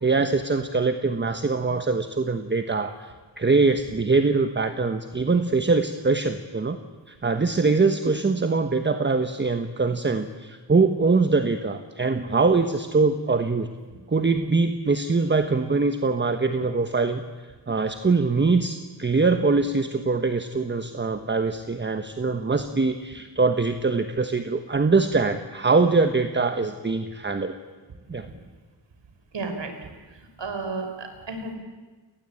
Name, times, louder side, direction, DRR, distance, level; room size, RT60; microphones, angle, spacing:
voice 1, 0.0-6.8 7.1-13.7 14.1-17.2 17.7-27.6 28.1-28.3, right 4 dB, 25° right, 8 dB, 1.2 m, -23 dB
voice 2, 29.3-29.7 30.4-31.6, right 3 dB, 75° right, 6 dB, 4.9 m, -32 dB
30.0 x 19.5 x 8.9 m, 1.3 s
wide cardioid pair, 135°, 44 cm